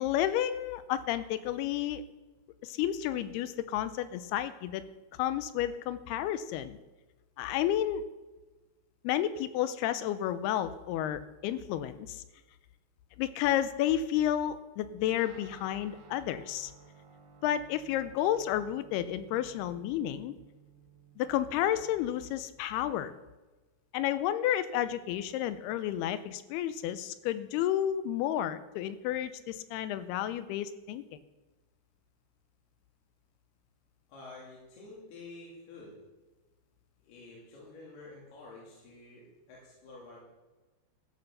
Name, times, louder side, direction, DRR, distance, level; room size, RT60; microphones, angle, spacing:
voice 1, 0.0-2.0 2.6-4.8 5.2-6.8 7.4-8.1 9.0-12.2 13.2-16.7 17.4-20.3 21.2-23.1 23.9-31.0, left 11 dB, 80° left, 13 dB, 2.4 m, -31 dB
Guitar, 15.2-22.9, right 7 dB, 70° right, 3.4 m, -57 dB
voice 2, 34.1-35.9 37.0-40.2, left 2 dB, 65° left, -4 dB, 4.4 m, -49 dB
14.5 x 8.3 x 6.5 m, 1.2 s
omnidirectional pair, 5.0 m